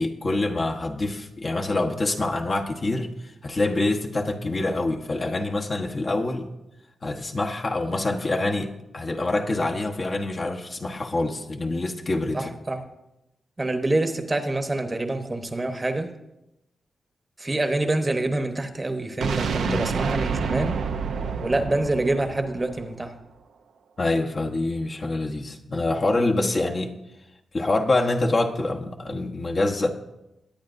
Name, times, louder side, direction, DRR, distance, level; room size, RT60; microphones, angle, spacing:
voice 1, 0.0-3.1 3.4-6.5 7.0-12.4 19.5-19.9 24.0-26.9 27.5-29.9, left 2 dB, 45° left, 1 dB, 1.1 m, -26 dB
voice 2, 12.3-12.8 13.6-16.1 17.4-20.8 21.4-23.2, right 2 dB, 25° right, 7 dB, 1.1 m, -26 dB
sound 1, 19.2-23.2, right 6 dB, 85° right, 0.6 m, -28 dB
20.5 x 8.7 x 2.6 m, 0.91 s
cardioid pair, 60°, 0 cm